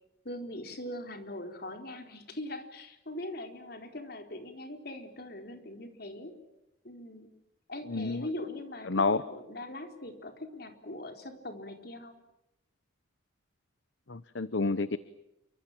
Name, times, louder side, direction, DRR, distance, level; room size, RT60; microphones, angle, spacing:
voice 1, 0.2-6.4 6.8-7.3 7.7-12.1, left 1 dB, 50° left, 5 dB, 4.2 m, -41 dB
voice 2, 7.9-8.3 8.9-9.2 14.1-15.0, left 3 dB, 65° left, 14 dB, 0.9 m, -29 dB
29.0 x 25.0 x 7.5 m, 0.88 s
head